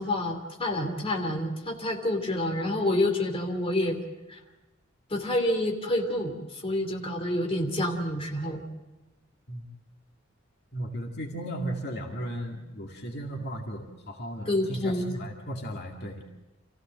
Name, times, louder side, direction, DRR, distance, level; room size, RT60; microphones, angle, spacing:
voice 1, 0.0-4.0 4.3-4.4 5.1-8.6 14.5-15.2, left 1 dB, 30° left, 2 dB, 2.8 m, -28 dB
voice 2, 10.7-16.2, right 1 dB, 55° left, 1 dB, 2.2 m, -35 dB
27.5 x 16.0 x 7.6 m, 1.1 s
head